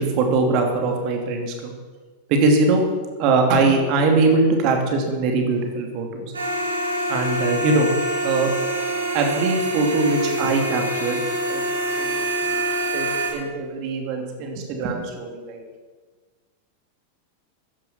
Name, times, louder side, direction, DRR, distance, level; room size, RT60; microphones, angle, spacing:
voice 1, 0.0-1.7 2.3-2.9 3.2-6.3 7.1-7.9 8.2-8.5 9.1-11.2 11.5-11.6 12.0-12.6 12.9-15.6, right 3 dB, 40° right, 3 dB, 2.8 m, -22 dB
sound 1, 6.3-13.3, right 1 dB, 75° right, 4.5 m, -25 dB
14.5 x 10.5 x 6.2 m, 1.4 s
figure-of-eight pair, 90°, 0 cm